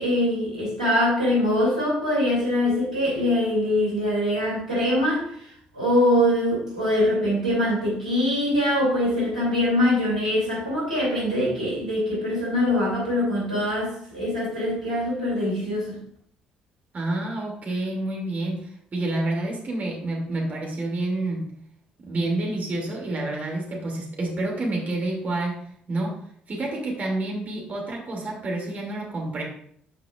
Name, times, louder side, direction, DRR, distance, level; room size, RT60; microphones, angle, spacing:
voice 1, 0.0-5.5 5.7-16.0, left 1 dB, 90° right, -7 dB, 2.9 m, -23 dB
voice 2, 16.9-21.4 22.0-25.6 25.9-26.2 26.5-29.4, right 2 dB, 40° right, -1 dB, 2.6 m, -28 dB
13.0 x 5.7 x 2.5 m, 0.64 s
figure-of-eight pair, 50°, 4 cm